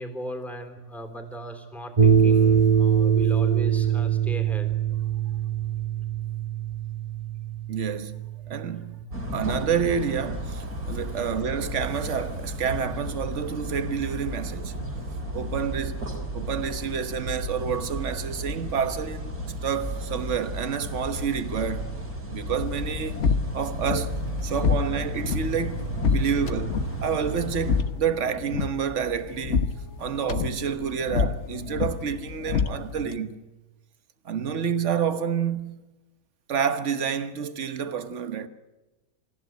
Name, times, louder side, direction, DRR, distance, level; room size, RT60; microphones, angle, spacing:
voice 1, 0.0-4.7, right 1 dB, ahead, 3.4 m, -37 dB
sound 1, 2.0-9.0, right 8 dB, 30° right, 1.0 m, -23 dB
voice 2, 7.7-14.8 15.3-16.1 16.3-22.0 22.3-29.6 30.0-33.4 34.2-35.8 36.5-38.5, right 7 dB, 55° right, 1.5 m, -29 dB
sound 2, 9.1-27.8, right 1 dB, 75° right, 4.6 m, -33 dB
sound 3, 22.6-33.2, left 6 dB, 55° left, 1.3 m, -29 dB
27.5 x 15.0 x 9.2 m
omnidirectional pair, 1.6 m